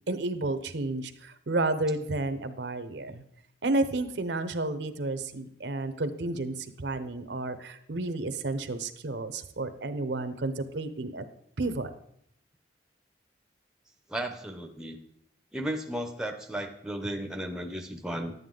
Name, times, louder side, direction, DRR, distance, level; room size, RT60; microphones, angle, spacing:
voice 1, 0.1-3.2 3.6-11.2 11.6-11.9, right 2 dB, 65° right, 11 dB, 0.7 m, -31 dB
voice 2, 14.1-15.0 15.5-18.3, right 1 dB, 5° right, 5 dB, 0.7 m, -34 dB
11.0 x 9.3 x 3.8 m, 0.72 s
head